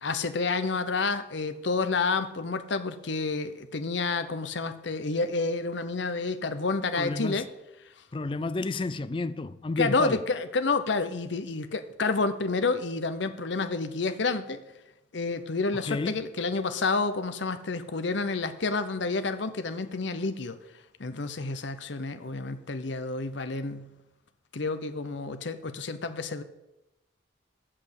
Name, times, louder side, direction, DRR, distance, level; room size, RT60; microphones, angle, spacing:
voice 1, 0.0-7.5 9.8-14.6 15.1-20.6 21.0-23.9 24.5-26.4, left 3 dB, 65° left, 0.8 m, -29 dB
voice 2, 6.9-7.4 8.1-10.2 15.8-16.2, left 3 dB, 25° left, 0.4 m, -31 dB
7.7 x 6.6 x 8.1 m
head